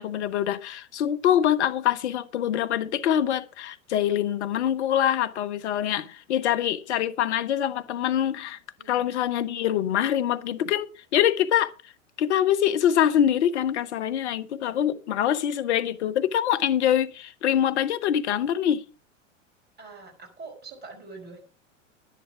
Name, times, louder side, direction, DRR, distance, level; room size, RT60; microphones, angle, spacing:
voice 1, 0.0-8.6 8.9-11.7 12.2-18.8, left 10 dB, 60° left, 1.0 m, -24 dB
voice 2, 19.8-21.4, right 4 dB, 25° right, 5.3 m, -44 dB
10.5 x 10.0 x 4.8 m
figure-of-eight pair, 95°, 38 cm